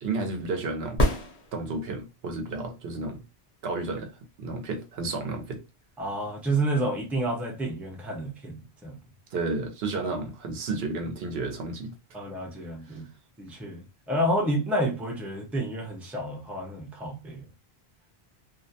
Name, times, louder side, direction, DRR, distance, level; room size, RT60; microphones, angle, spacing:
voice 1, 0.0-1.0 1.5-3.2 3.6-4.1 4.4-5.6 9.3-11.9 12.9-13.0, right 3 dB, 75° right, 0.8 m, -32 dB
sound 1, 1.0-2.1 6.0-6.1, equal, 45° left, 0.7 m, -26 dB
voice 2, 6.0-9.0 10.0-10.2 12.1-13.1 13.4-17.5, right 1 dB, ahead, 0.5 m, -30 dB
2.4 x 2.0 x 2.7 m
omnidirectional pair, 1.1 m